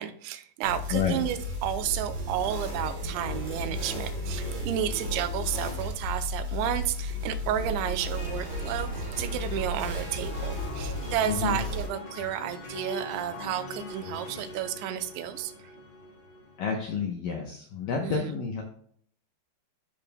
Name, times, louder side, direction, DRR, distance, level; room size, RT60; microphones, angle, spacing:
voice 1, 0.0-15.5 18.0-18.3, right 11 dB, 85° right, 9 dB, 3.0 m, -32 dB
sound 1, 0.6-11.9, left 1 dB, 50° right, 4.5 m, -34 dB
voice 2, 0.9-1.2 11.3-11.6 16.6-18.6, left 6 dB, 80° left, 1 dB, 2.0 m, -29 dB
sound 2, 8.1-16.7, left 1 dB, 45° left, 1.7 m, -42 dB
13.0 x 5.3 x 2.2 m, 0.62 s
omnidirectional pair, 5.2 m